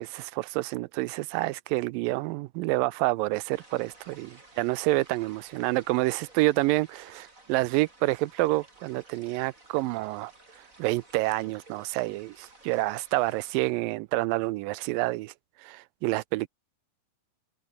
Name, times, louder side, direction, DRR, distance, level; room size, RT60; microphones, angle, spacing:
voice 1, 0.0-10.3 10.8-15.3 15.6-16.5, right 20 dB, 80° right, 2.1 m, -28 dB
sound 1, 3.5-13.5, right 2 dB, 20° right, 5.6 m, -55 dB
omnidirectional pair, 4.4 m